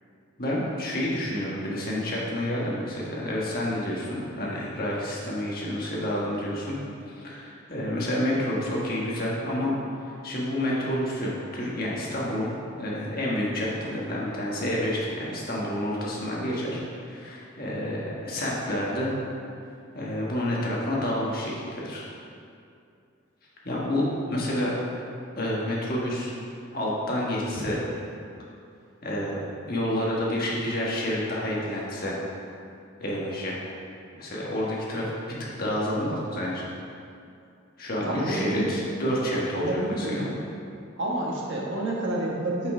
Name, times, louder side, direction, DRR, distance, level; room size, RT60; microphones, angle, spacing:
voice 1, 0.4-6.7 7.1-19.1 19.9-22.0 23.6-24.7 25.4-26.3 26.7-27.8 29.0-29.4 29.7-32.2 33.0-33.6 34.2-35.1 35.4-36.7 37.8-40.3, left 1 dB, 45° left, -5 dB, 1.4 m, -29 dB
voice 2, 38.0-38.7 39.5-40.3 41.0-42.7, right 1 dB, 60° right, -3 dB, 1.4 m, -29 dB
6.9 x 5.5 x 4.9 m, 2.5 s
head